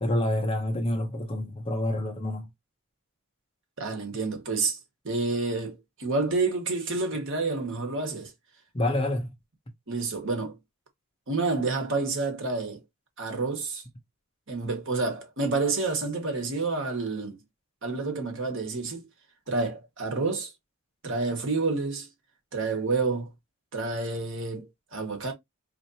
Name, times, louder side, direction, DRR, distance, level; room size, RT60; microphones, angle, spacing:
voice 1, 0.0-2.5 8.7-9.3, left 1 dB, 25° left, 0.9 m, -27 dB
voice 2, 3.8-4.8 5.0-8.3 9.9-10.6 11.3-12.8 13.2-13.8 14.5-17.4 17.8-19.1 19.5-20.5 21.0-22.1 22.5-23.3 23.7-25.3, right 3 dB, 60° right, 1.4 m, -29 dB
4.4 x 3.1 x 2.8 m
head